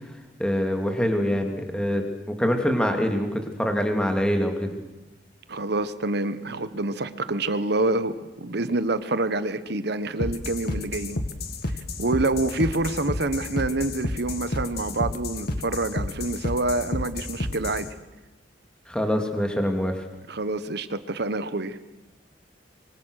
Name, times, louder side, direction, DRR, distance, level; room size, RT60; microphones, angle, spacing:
voice 1, 0.4-2.0 2.4-4.8 18.9-20.0, equal, 5° left, 4 dB, 2.8 m, -24 dB
voice 2, 5.5-11.2 12.0-17.9 20.3-21.8, right 2 dB, 60° right, 13 dB, 1.2 m, -27 dB
sound 1, 10.2-17.9, left 1 dB, 55° left, 1.9 m, -30 dB
24.5 x 24.5 x 6.6 m, 1.1 s
head